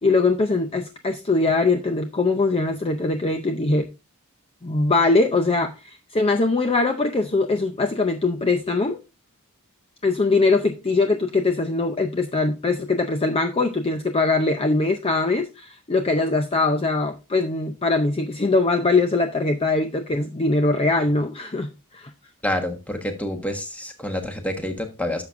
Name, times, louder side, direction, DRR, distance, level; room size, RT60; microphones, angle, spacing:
voice 1, 0.0-3.9 4.6-9.0 10.0-22.1, left 3 dB, 25° left, 0.6 m, -22 dB
voice 2, 22.4-25.2, left 1 dB, 5° left, 1.3 m, -28 dB
11.0 x 6.9 x 2.5 m
head